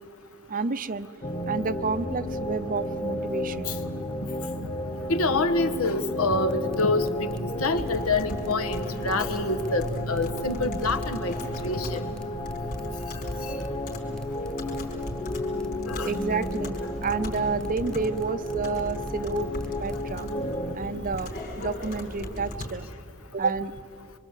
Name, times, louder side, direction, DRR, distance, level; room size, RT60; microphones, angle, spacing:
voice 1, 0.5-1.1 1.5-3.8 16.1-16.8 17.0-19.5 19.8-20.3 20.7-21.3 21.6-22.9 23.3-23.7, right 4 dB, 40° right, 12 dB, 0.7 m, -29 dB
sound 1, 1.2-20.8, left 1 dB, 30° left, 1.6 m, -33 dB
voice 2, 5.1-7.3 7.6-11.3 11.6-12.1 15.9-16.4, left 2 dB, 75° left, 9 dB, 1.5 m, -26 dB
sound 2, 6.5-20.0, equal, 5° left, 1.1 m, -45 dB
Computer keyboard, 7.7-22.7, left 1 dB, 50° left, 4.6 m, -38 dB
25.5 x 25.5 x 8.3 m, 2.6 s
head